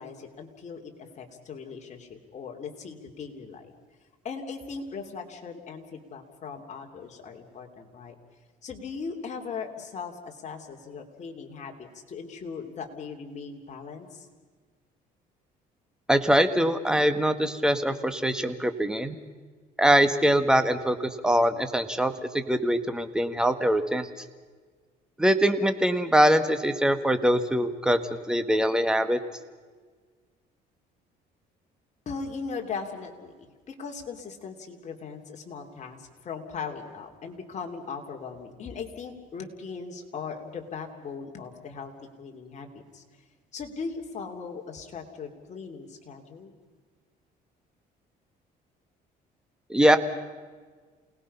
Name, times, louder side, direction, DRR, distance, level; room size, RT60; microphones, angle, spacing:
voice 1, 0.0-3.7 4.2-8.1 8.6-14.3 32.0-41.9 42.2-42.7 42.9-43.0 43.5-46.5, left 5 dB, 45° left, 3 dB, 3.2 m, -39 dB
voice 2, 16.1-19.2 19.8-24.1 25.2-29.2 49.7-50.0, equal, 5° right, 9 dB, 1.5 m, -23 dB
28.5 x 19.5 x 5.6 m, 1.5 s
cardioid pair, 110°, 17 cm